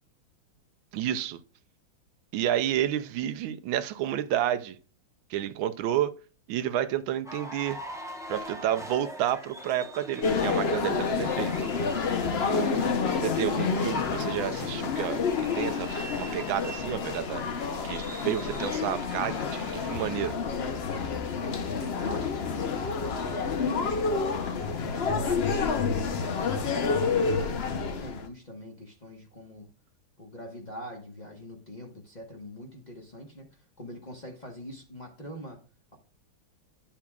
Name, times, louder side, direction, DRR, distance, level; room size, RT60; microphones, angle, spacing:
voice 1, 0.9-1.4 2.3-4.8 5.3-6.2 6.5-7.8 8.3-11.5 13.2-15.9 16.1-17.4 17.8-20.4, right 11 dB, 90° right, 1.5 m, -30 dB
sound 1, 7.2-20.3, equal, 5° right, 0.3 m, -43 dB
sound 2, 10.2-28.3, left 5 dB, 55° left, 0.7 m, -29 dB
voice 2, 20.9-26.8 27.1-29.7 30.2-35.6, equal, 25° left, 1.1 m, -44 dB
9.9 x 7.2 x 2.3 m
omnidirectional pair, 2.1 m